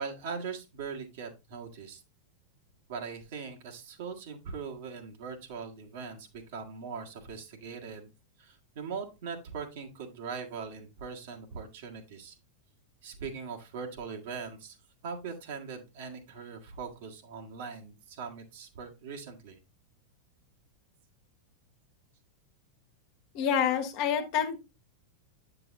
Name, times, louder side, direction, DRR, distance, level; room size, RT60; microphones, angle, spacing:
voice 1, 0.0-2.0 2.9-8.1 8.4-12.3 13.0-14.8 15.0-19.6 24.2-24.3, right 5 dB, 55° right, 1 dB, 1.7 m, -41 dB
voice 2, 23.3-24.6, left 8 dB, 45° left, 6 dB, 1.5 m, -27 dB
9.0 x 6.8 x 2.6 m, 0.25 s
figure-of-eight pair, 90°, 0 cm